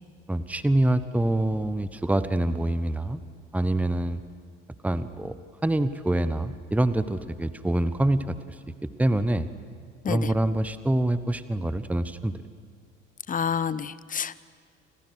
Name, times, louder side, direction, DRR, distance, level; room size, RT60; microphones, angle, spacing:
voice 1, 0.3-3.2 3.5-4.2 4.8-5.3 5.6-8.3 9.0-9.5 10.1-12.3, right 1 dB, 5° right, 13 dB, 1.1 m, -25 dB
voice 2, 13.3-14.4, left 7 dB, 25° left, 19 dB, 0.9 m, -28 dB
30.0 x 26.0 x 6.4 m, 2.1 s
figure-of-eight pair, 60°, 35 cm